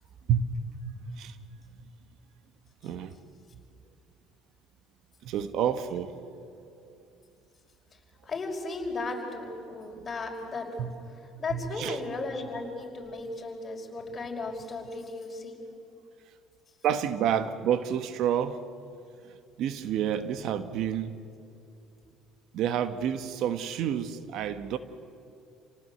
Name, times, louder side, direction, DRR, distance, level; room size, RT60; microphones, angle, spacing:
voice 1, 0.3-0.6 1.1-1.4 1.8-1.9 2.8-3.2 5.2-6.3 6.8-6.9 10.8-10.9 11.5-12.0 16.8-18.6 19.2-21.2 22.5-24.8, right 9 dB, 70° right, 1.3 m, -29 dB
voice 2, 8.2-10.9 11.4-15.6, left 3 dB, 30° left, 5.5 m, -35 dB
28.5 x 18.5 x 8.0 m
supercardioid pair, 95°, 0 cm